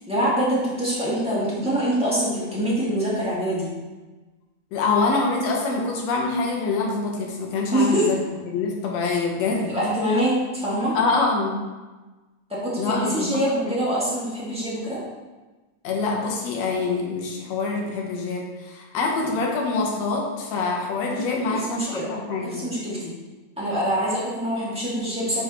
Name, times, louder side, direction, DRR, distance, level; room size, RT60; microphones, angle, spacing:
voice 1, 0.1-3.7 7.7-8.1 9.7-10.9 12.5-15.0 21.4-22.1 22.4-23.1 23.6-25.4, right 1 dB, 5° right, -9 dB, 1.3 m, -24 dB
voice 2, 4.7-8.2 8.5-9.7 10.9-11.6 12.8-13.7 15.8-22.7, left 3 dB, 65° left, -1 dB, 2.1 m, -25 dB
11.0 x 4.0 x 3.0 m, 1.2 s
omnidirectional pair, 3.4 m